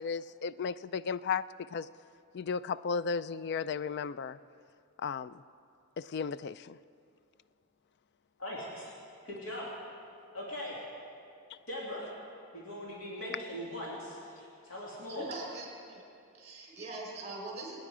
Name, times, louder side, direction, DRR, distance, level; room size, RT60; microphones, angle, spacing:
voice 1, 0.0-1.4 1.7-1.9 2.3-4.4 5.0-5.3 6.0-6.8, left 5 dB, 50° left, 16 dB, 0.3 m, -34 dB
voice 2, 8.4-9.0 9.2-9.7 10.3-10.8 11.7-12.1 12.5-15.3, left 1 dB, 65° left, -5 dB, 2.7 m, -40 dB
voice 3, 15.1-16.0 16.3-17.8, right 2 dB, 30° right, -1 dB, 4.7 m, -42 dB
26.0 x 9.4 x 5.0 m, 2.5 s
head